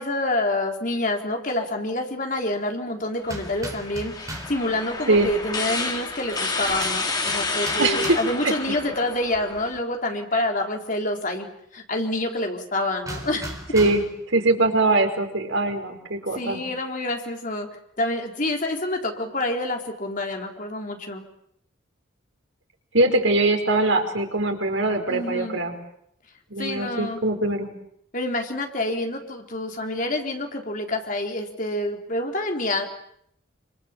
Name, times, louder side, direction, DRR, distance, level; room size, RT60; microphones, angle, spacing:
voice 1, 0.0-13.5 16.3-17.7 18.0-21.2 25.1-25.6 26.6-27.2 28.1-32.8, left 2 dB, 40° left, 3 dB, 4.0 m, -27 dB
sound 1, 3.3-9.8, left 3 dB, 20° left, 3.0 m, -30 dB
sound 2, 3.3-4.6 6.4-8.5 13.0-14.2, right 1 dB, 15° right, 4.2 m, -37 dB
voice 2, 7.8-8.2 8.4-8.5 13.7-14.0 14.3-16.6 22.9-25.7 26.5-27.7, right 2 dB, 75° right, 4 dB, 4.8 m, -22 dB
27.5 x 26.5 x 7.5 m, 0.72 s
head